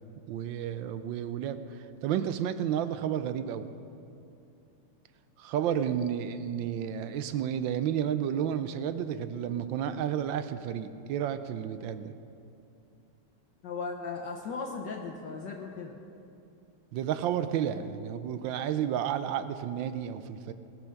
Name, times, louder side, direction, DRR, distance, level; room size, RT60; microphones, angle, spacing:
voice 1, 0.3-3.7 5.4-12.1 16.9-20.5, right 9 dB, 75° right, 11 dB, 1.2 m, -31 dB
voice 2, 13.6-16.0, left 4 dB, 60° left, 1 dB, 1.4 m, -37 dB
19.5 x 7.1 x 6.4 m, 2.6 s
omnidirectional pair, 2.4 m